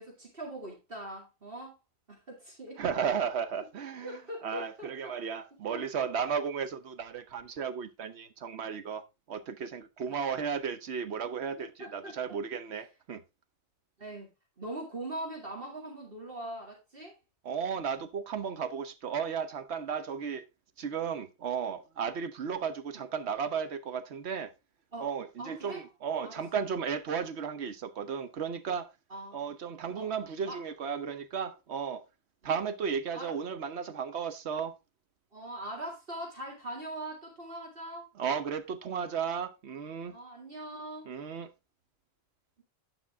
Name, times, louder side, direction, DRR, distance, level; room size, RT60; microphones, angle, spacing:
voice 1, 0.0-1.8 2.1-2.8 4.0-5.1 5.5-5.8 11.6-12.2 14.0-17.2 22.9-23.1 24.9-25.1 25.4-25.8 26.2-26.4 29.1-29.4 29.9-30.1 30.5-30.6 32.4-32.5 33.1-33.4 35.3-38.1 40.1-41.1, right 1 dB, 60° right, 2.6 m, -42 dB
voice 2, 2.8-4.2 4.4-9.0 9.3-13.2 17.4-20.4 20.8-24.5 25.0-28.9 29.3-32.0 32.4-34.7 38.2-40.1 41.1-41.5, right 7 dB, 85° right, 1.2 m, -34 dB
10.0 x 5.5 x 3.4 m
omnidirectional pair, 1.1 m